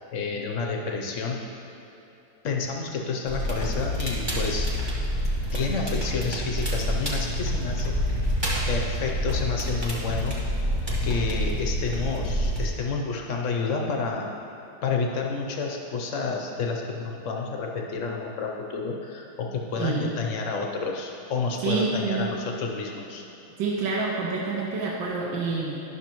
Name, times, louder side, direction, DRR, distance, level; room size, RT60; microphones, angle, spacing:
voice 1, 0.1-1.4 2.4-4.7 5.5-8.0 8.7-10.4 11.0-14.3 14.8-23.2, left 4 dB, 65° left, 1 dB, 0.8 m, -30 dB
Crackle, 3.3-12.7, equal, 20° right, 0.9 m, -27 dB
voice 2, 19.7-20.1 21.6-22.3 23.6-25.8, right 4 dB, 80° right, -4 dB, 1.6 m, -27 dB
11.5 x 6.2 x 3.0 m, 3.0 s
omnidirectional pair, 2.1 m